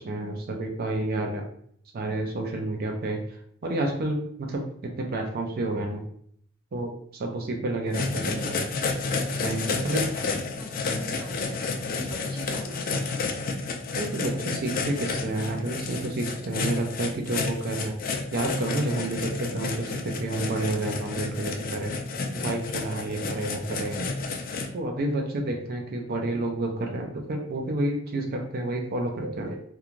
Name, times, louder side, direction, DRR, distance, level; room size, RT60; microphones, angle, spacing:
voice 1, 0.0-1.4 1.9-6.0 6.7-8.6 9.4-10.1 13.9-17.9 18.3-21.9 22.3-24.1 24.7-29.6, right 2 dB, 50° right, 2 dB, 0.4 m, -30 dB
sound 1, 7.9-24.7, left 4 dB, 45° left, 0.4 m, -31 dB
voice 2, 9.7-13.1, equal, 25° right, -6 dB, 1.1 m, -43 dB
3.0 x 2.3 x 2.4 m, 0.65 s
head